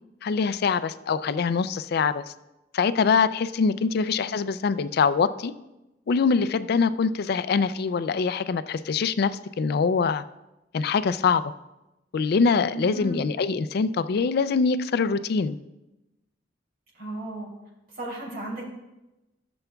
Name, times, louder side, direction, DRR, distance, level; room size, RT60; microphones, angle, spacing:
voice 1, 0.2-2.2 2.7-5.5 6.1-10.2 10.7-11.4 12.1-15.6, left 5 dB, 60° left, 14 dB, 0.4 m, -24 dB
voice 2, 3.8-4.4 12.7-13.3 16.9-17.5 17.9-18.6, right 1 dB, 55° right, -5 dB, 3.1 m, -35 dB
15.0 x 7.0 x 2.3 m, 0.97 s
head